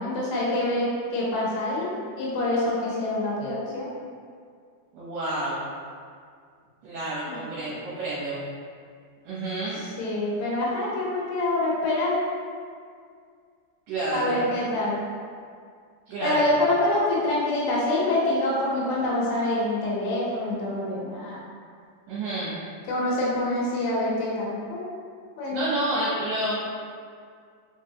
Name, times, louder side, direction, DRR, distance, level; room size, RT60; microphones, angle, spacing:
voice 1, 0.0-1.9 2.2-3.9 7.3-7.4 10.0-12.1 14.1-15.0 16.2-21.4 22.9-24.9 25.4-25.6, left 1 dB, 75° left, -5 dB, 2.6 m, -26 dB
voice 2, 4.9-5.7 6.8-8.4 9.2-9.8 13.9-14.5 16.1-16.5 22.1-22.6 25.5-26.6, right 1 dB, 70° right, -9 dB, 2.3 m, -29 dB
5.5 x 3.2 x 2.8 m, 2.2 s
omnidirectional pair, 4.3 m